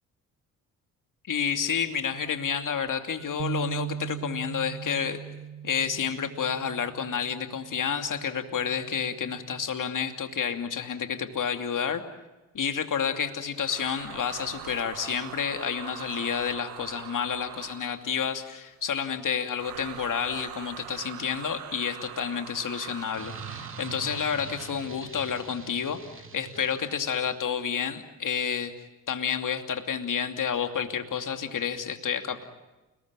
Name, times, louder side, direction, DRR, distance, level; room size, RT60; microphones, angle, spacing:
voice 1, 1.3-5.2 5.6-12.0 12.5-28.7 29.1-32.4, left 7 dB, 45° left, 6 dB, 2.7 m, -30 dB
sound 1, 3.4-9.6, right 9 dB, 45° right, 1.0 m, -39 dB
sound 2, 13.6-18.1 19.5-25.0, right 14 dB, 85° right, 1.0 m, -42 dB
sound 3, 23.1-27.6, right 4 dB, 30° right, 2.6 m, -44 dB
29.0 x 20.0 x 8.9 m, 1.1 s
hypercardioid pair, 45°, 43 cm